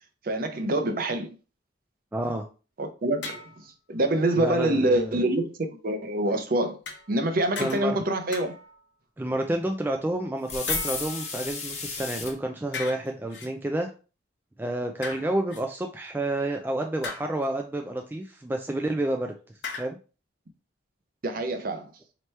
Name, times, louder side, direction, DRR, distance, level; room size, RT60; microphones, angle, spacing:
voice 1, 0.2-1.4 2.8-3.5 3.9-5.5 5.8-6.8 7.1-8.5 21.2-21.9, right 1 dB, 50° right, 0.6 m, -25 dB
voice 2, 2.1-2.5 4.4-5.1 7.6-7.9 9.2-13.9 14.6-19.3 19.8-20.0, right 1 dB, 10° right, 0.3 m, -29 dB
sound 1, 3.2-3.6 6.9-7.3 7.5-8.0 8.3-8.8 10.7-11.7 12.7-13.5 15.0-15.6 17.0-17.5 19.6-19.8, left 4 dB, 65° left, 0.8 m, -38 dB
sound 2, 10.5-12.3, left 4 dB, 35° left, 1.0 m, -32 dB
4.5 x 2.9 x 3.2 m
head